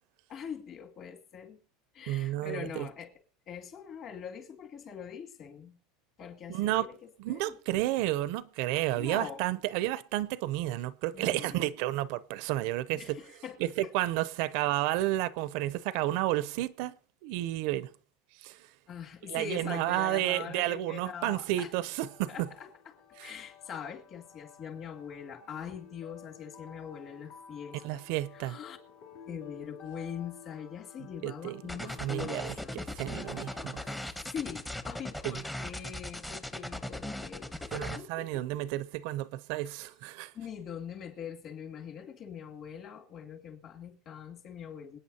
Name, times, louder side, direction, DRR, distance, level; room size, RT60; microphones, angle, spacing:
voice 1, 0.3-1.6 1.9-3.1 3.5-5.8 6.2-7.0 7.3-7.6 8.9-9.4 11.1-11.7 12.9-13.6 13.8-13.9 18.9-21.7 22.3-22.7 23.2-28.0 28.3-28.8 29.3-32.8 34.3-38.4 39.6-39.8 40.3-45.0, left 8 dB, 40° left, 2.3 m, -42 dB
voice 2, 2.1-2.9 6.5-6.9 7.2-13.2 13.6-16.9 17.2-17.9 18.4-18.6 19.3-22.5 23.2-23.3 27.8-28.6 31.2-31.6 32.0-33.8 35.2-35.4 37.7-40.3, right 15 dB, 60° right, 0.5 m, -31 dB
sound 1, 21.8-34.1, left 8 dB, 70° left, 2.8 m, -53 dB
sound 2, 31.7-38.0, left 1 dB, 5° left, 0.8 m, -38 dB
27.0 x 9.0 x 2.8 m
supercardioid pair, 155°, 0 cm